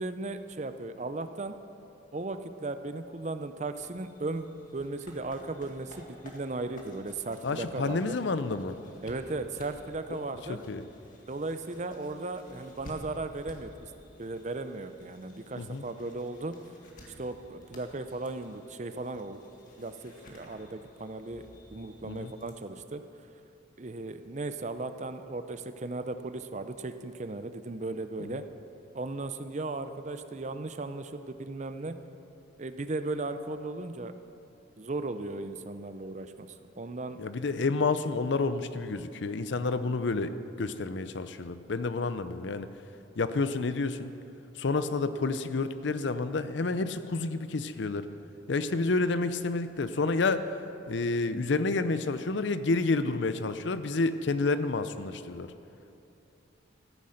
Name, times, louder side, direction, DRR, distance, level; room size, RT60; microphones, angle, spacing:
voice 1, 0.0-1.5 2.1-8.2 9.0-10.6 11.3-13.9 14.2-16.6 17.2-19.4 19.8-21.5 21.7-23.0 23.8-28.4 28.9-32.0 32.6-34.2 34.8-36.5 36.8-37.2, right 2 dB, 35° right, 10 dB, 0.5 m, -36 dB
sound 1, 3.7-22.5, left 1 dB, 45° left, 1.8 m, -53 dB
voice 2, 7.4-8.8 10.1-10.2 10.5-10.8 15.6-15.8 22.1-22.3 28.2-28.3 37.2-42.7 43.2-44.1 44.6-48.1 48.5-50.5 50.8-55.5, left 3 dB, 65° left, 12 dB, 0.6 m, -29 dB
14.0 x 10.0 x 6.5 m, 2.9 s
head